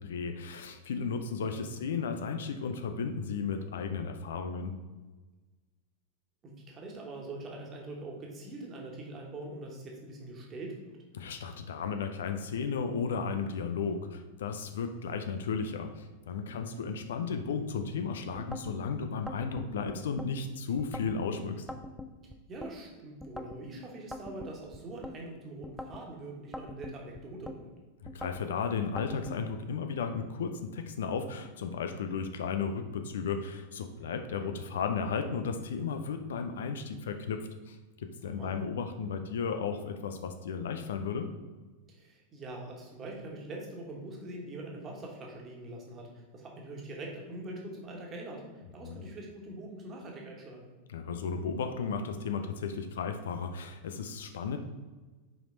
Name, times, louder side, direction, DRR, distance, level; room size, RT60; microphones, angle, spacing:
voice 1, 0.0-4.7 11.1-21.7 28.0-41.3 48.8-49.0 50.9-54.6, left 5 dB, 60° left, 7 dB, 0.5 m, -34 dB
voice 2, 1.1-1.8 6.4-10.9 16.5-16.9 22.2-27.7 34.0-34.6 38.2-38.6 41.9-48.4 48.7-50.6, right 2 dB, 25° right, -1 dB, 1.5 m, -43 dB
sound 1, 18.4-18.8 19.3-20.3 20.8-21.2 21.7-22.7 23.2-23.6 24.1-25.2 25.6-26.1 26.5-27.6 28.1-28.5 29.0-29.4, left 1 dB, ahead, 0.5 m, -43 dB
6.0 x 5.0 x 3.9 m, 1.3 s
figure-of-eight pair, 90°, 0 cm